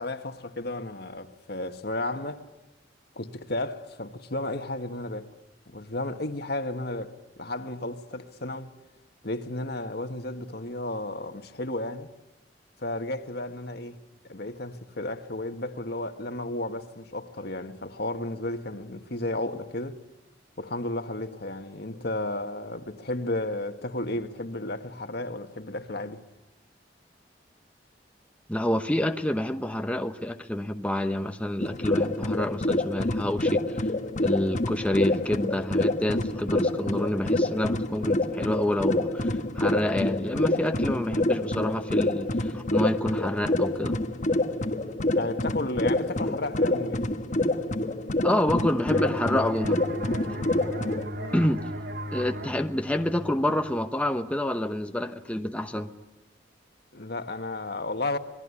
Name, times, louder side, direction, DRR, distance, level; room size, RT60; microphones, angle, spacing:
voice 1, 0.0-2.4 3.1-5.3 5.7-8.7 9.2-12.1 12.8-14.0 14.2-20.0 20.6-26.2 45.1-47.0 51.1-51.4 56.9-58.2, left 2 dB, 60° left, 1.7 m, -33 dB
voice 2, 28.5-33.9 34.2-44.0 46.2-46.3 48.2-49.8 51.3-51.6 52.1-55.9, left 1 dB, 5° left, 1.0 m, -28 dB
sound 1, 31.6-51.1, left 1 dB, 45° left, 1.3 m, -27 dB
sound 2, 48.9-54.3, equal, 60° right, 2.2 m, -37 dB
27.0 x 21.0 x 9.9 m
head